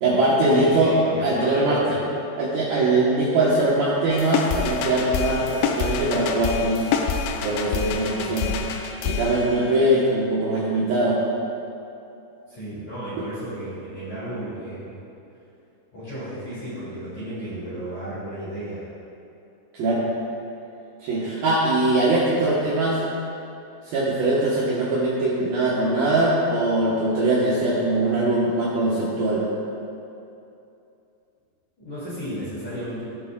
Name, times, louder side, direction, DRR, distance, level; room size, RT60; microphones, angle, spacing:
voice 1, 0.0-2.0 2.4-6.8 7.4-8.5 9.0-11.2 19.8-20.0 21.0-23.0 23.9-29.4, right 2 dB, 75° right, -7 dB, 2.1 m, -21 dB
voice 2, 0.5-2.0 8.2-8.4 12.5-14.9 15.9-18.9 31.8-33.0, right 1 dB, 45° left, -12 dB, 3.1 m, -33 dB
sound 1, 4.1-10.0, left 6 dB, 85° left, 2.8 m, -27 dB
19.0 x 7.1 x 2.2 m, 2.7 s
omnidirectional pair, 5.6 m